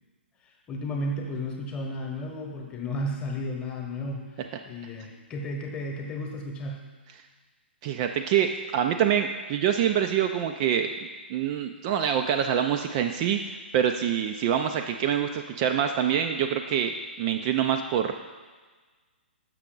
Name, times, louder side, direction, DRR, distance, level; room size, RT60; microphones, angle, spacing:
voice 1, 0.4-6.9, left 1 dB, 20° left, 1 dB, 1.0 m, -33 dB
voice 2, 7.8-10.9 11.3-18.1, right 9 dB, 35° right, 5 dB, 0.4 m, -25 dB
6.5 x 6.1 x 3.8 m, 1.4 s
figure-of-eight pair, 125°, 6 cm